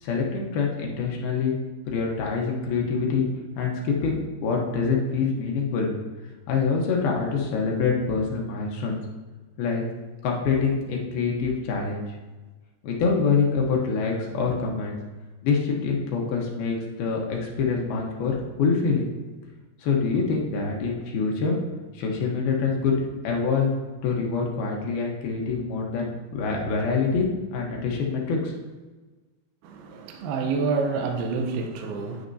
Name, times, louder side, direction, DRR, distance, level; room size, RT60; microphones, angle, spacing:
voice 1, 0.0-1.6 1.9-3.3 3.6-5.9 6.5-9.0 9.6-9.8 10.2-12.0 12.8-15.0 15.4-19.1 19.8-21.6 21.9-22.9 23.2-23.7 24.0-28.5, left 5 dB, 70° left, -1 dB, 2.6 m, -25 dB
voice 2, 29.6-32.3, right 4 dB, 75° right, 4 dB, 2.4 m, -28 dB
9.5 x 9.5 x 2.7 m, 1.3 s
omnidirectional pair, 5.3 m